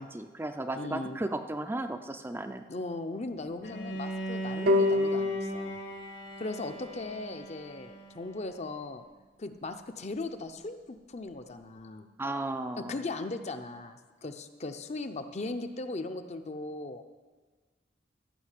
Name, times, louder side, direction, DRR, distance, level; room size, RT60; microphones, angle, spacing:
voice 1, 0.0-2.6 12.2-13.0, right 2 dB, 15° right, 7 dB, 0.4 m, -35 dB
voice 2, 0.7-1.2 2.7-5.8 6.4-9.0 9.4-12.1 12.8-17.0, left 2 dB, 40° left, 8 dB, 0.6 m, -38 dB
Bowed string instrument, 3.6-8.6, right 1 dB, 75° left, 1.9 m, -39 dB
sound 1, 4.7-7.9, left 2 dB, 60° right, 0.7 m, -30 dB
13.0 x 5.8 x 8.3 m, 1.4 s
head